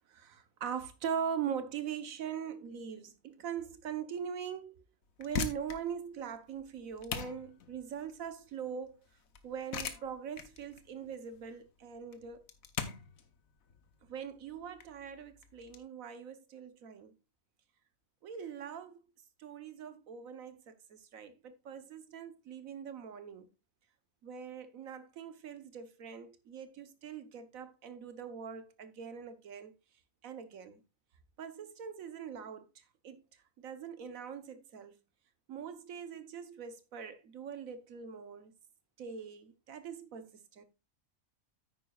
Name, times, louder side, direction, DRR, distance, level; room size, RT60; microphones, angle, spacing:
voice 1, 0.1-4.8 5.2-9.0 9.4-12.4 14.0-17.1 18.2-19.0 19.4-23.5 24.2-29.7 30.2-30.8 31.4-33.2 33.6-35.0 35.5-38.5 39.0-40.6, right 7 dB, 80° right, 1.4 m, -42 dB
sound 1, 5.0-15.8, left 6 dB, 80° left, 1.4 m, -42 dB
9.5 x 9.2 x 2.3 m
omnidirectional pair, 1.4 m